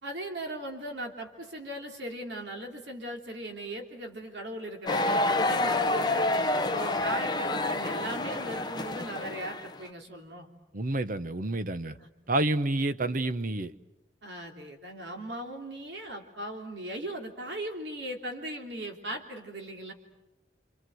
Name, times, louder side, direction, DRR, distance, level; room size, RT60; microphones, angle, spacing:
voice 1, 0.0-10.5 12.0-12.1 14.2-19.9, right 1 dB, 70° right, 3.3 m, -38 dB
sound 1, 4.9-9.8, left 2 dB, 25° left, 1.0 m, -28 dB
voice 2, 10.7-11.9 12.3-13.7, right 2 dB, 50° right, 1.0 m, -29 dB
28.0 x 27.0 x 7.9 m
head